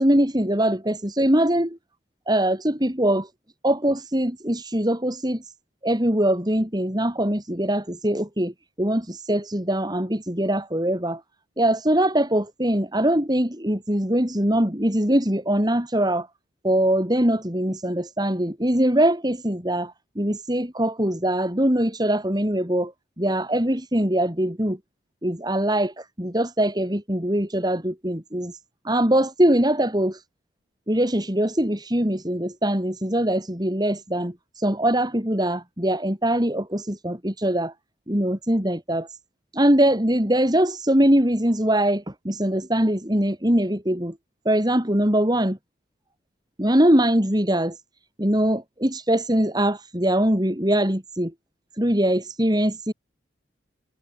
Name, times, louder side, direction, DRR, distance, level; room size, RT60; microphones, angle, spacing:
voice 1, 0.0-1.8 2.3-3.3 3.6-5.5 5.8-8.5 8.8-11.2 11.6-16.3 16.6-22.9 23.2-24.8 25.2-28.6 28.8-30.2 30.9-37.7 38.1-39.1 39.5-44.1 44.5-45.6 46.6-47.8 48.2-51.3 51.8-52.9, right 1 dB, 20° right, 4.2 m, -22 dB
head